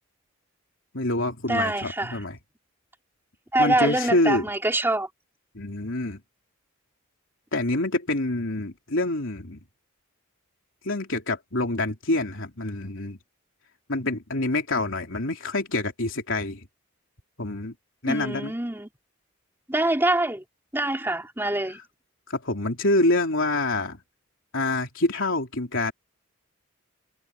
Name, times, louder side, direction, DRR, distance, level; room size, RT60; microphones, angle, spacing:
voice 1, 0.9-2.4 3.6-4.4 5.5-6.2 7.5-9.6 10.8-13.2 13.9-16.6 17.4-17.7 18.0-18.5 22.3-24.0 24.5-25.9, left 2 dB, 60° left, 3.6 m, -26 dB
voice 2, 1.5-2.2 3.5-5.1 18.1-18.9 19.7-20.4 20.7-21.8, right 1 dB, 10° right, 3.5 m, -25 dB
head